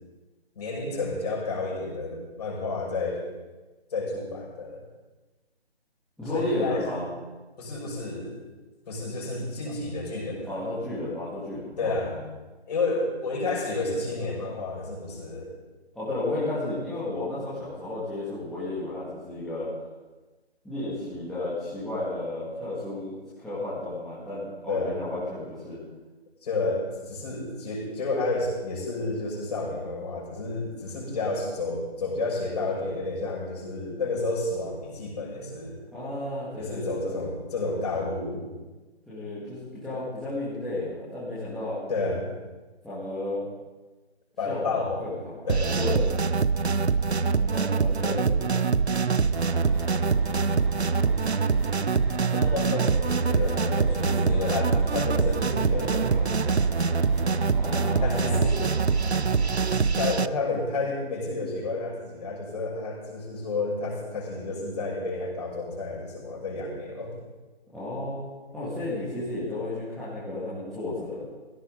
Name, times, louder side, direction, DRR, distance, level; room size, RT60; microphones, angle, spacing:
voice 1, 0.5-3.2 3.9-4.8 6.3-7.0 7.6-8.3 8.9-10.6 11.8-12.1 12.7-15.5 24.7-25.0 26.4-35.8 36.5-38.4 41.9-42.3 44.4-45.1 45.5-45.8 49.1-49.7 52.3-56.5 57.0-57.2 58.0-58.8 60.0-67.1 69.0-69.1, left 3 dB, 40° left, -3 dB, 6.3 m, -31 dB
voice 2, 6.2-7.0 10.5-12.2 15.9-19.7 20.6-25.8 35.9-37.3 39.1-41.8 42.8-43.5 44.4-45.4 45.7-46.1 47.4-48.5 57.5-58.5 67.7-68.2 68.5-71.3, left 2 dB, ahead, -13 dB, 2.1 m, -33 dB
sound 1, 45.5-60.3, right 5 dB, 85° right, 0.7 m, -24 dB
sound 2, 49.3-59.7, right 2 dB, 50° right, 3.0 m, -41 dB
16.5 x 16.0 x 4.0 m, 1.2 s
figure-of-eight pair, 150°, 32 cm